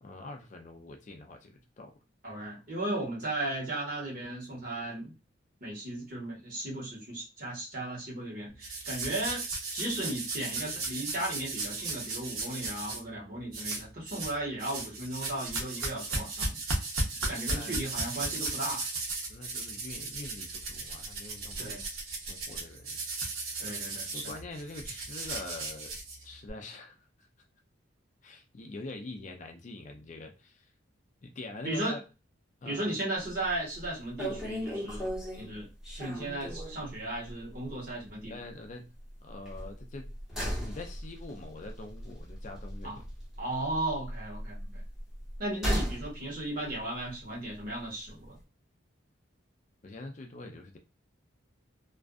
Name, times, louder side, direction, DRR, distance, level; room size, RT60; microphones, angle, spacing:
voice 1, 0.0-2.0 17.5-17.8 19.3-23.0 23.4-23.7 24.1-27.3 28.2-30.7 31.2-32.0 32.6-32.9 38.2-38.9 39.2-40.1 40.4-43.1 49.8-50.8, left 2 dB, 35° left, 0.4 m, -44 dB
voice 2, 2.2-5.1 5.6-9.4 9.7-16.6 17.2-18.8 21.6-21.8 23.6-24.3 31.6-32.0 32.6-35.1 35.4-38.3 42.8-43.0 43.4-44.8 45.4-48.3, right 1 dB, 45° right, 1.2 m, -36 dB
sound 1, 8.6-13.0 13.5-14.3 14.6-26.5, right 3 dB, 85° right, 0.8 m, -36 dB
sound 2, 33.3-33.6 33.8-33.9 34.2-36.9 37.3-37.4 37.7-37.8 39.5-43.4 43.7-46.1 46.4-46.5, equal, 5° right, 0.8 m, -36 dB
2.5 x 2.3 x 2.3 m
head